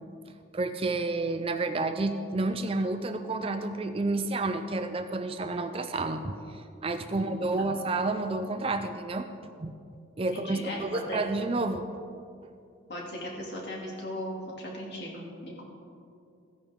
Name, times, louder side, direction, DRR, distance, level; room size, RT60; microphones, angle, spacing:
voice 1, 0.5-9.7 10.2-11.8, right 2 dB, 30° right, 8 dB, 0.4 m, -30 dB
voice 2, 7.1-7.6 10.3-11.2 12.9-15.6, left 1 dB, 55° left, -2 dB, 2.4 m, -38 dB
15.0 x 9.9 x 3.7 m, 2.4 s
head